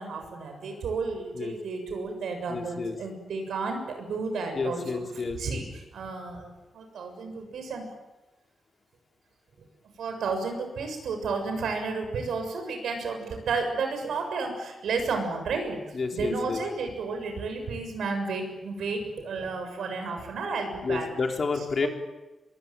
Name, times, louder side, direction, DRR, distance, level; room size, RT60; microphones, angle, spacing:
voice 1, 0.0-5.0 5.4-5.7 5.9-7.9 10.0-15.8 16.1-21.1 21.8-21.9, right 4 dB, 90° right, 5 dB, 7.0 m, -32 dB
voice 2, 2.5-3.0 4.5-5.6 15.9-16.6 20.8-21.9, left 4 dB, 45° left, 3 dB, 3.7 m, -30 dB
26.0 x 21.5 x 9.1 m, 1.1 s
wide cardioid pair, 120°, 0 cm